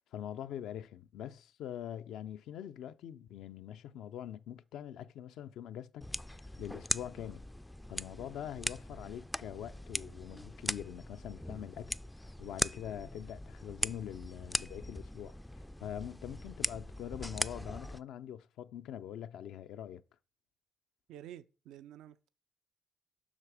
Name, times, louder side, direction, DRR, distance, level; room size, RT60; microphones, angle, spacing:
voice 1, 0.0-6.0 6.3-7.4 7.9-20.0, left 10 dB, 85° left, 0.4 m, -44 dB
sound 1, 6.0-18.0, left 1 dB, 5° left, 0.3 m, -40 dB
voice 2, 21.1-22.3, right 11 dB, 85° right, 0.4 m, -50 dB
7.3 x 5.9 x 4.9 m
cardioid pair, 90°, 0 cm